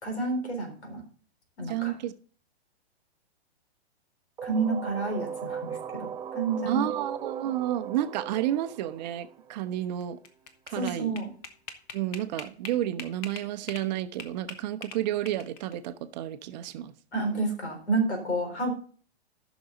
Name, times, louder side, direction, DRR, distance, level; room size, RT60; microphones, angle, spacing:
voice 1, 0.0-1.0 1.6-1.9 4.4-6.8 10.7-11.3 17.1-18.7, right 3 dB, 80° left, 4 dB, 4.1 m, -30 dB
voice 2, 1.6-2.1 6.7-10.2 10.7-11.2 11.9-16.9, right 12 dB, 40° right, 11 dB, 0.8 m, -31 dB
sound 1, 4.4-10.1, right 8 dB, 10° right, 0.5 m, -38 dB
sound 2, 10.0-13.9 14.2-15.7, left 6 dB, 30° left, 1.2 m, -42 dB
14.0 x 6.3 x 3.9 m, 0.43 s
hypercardioid pair, 120°, 33 cm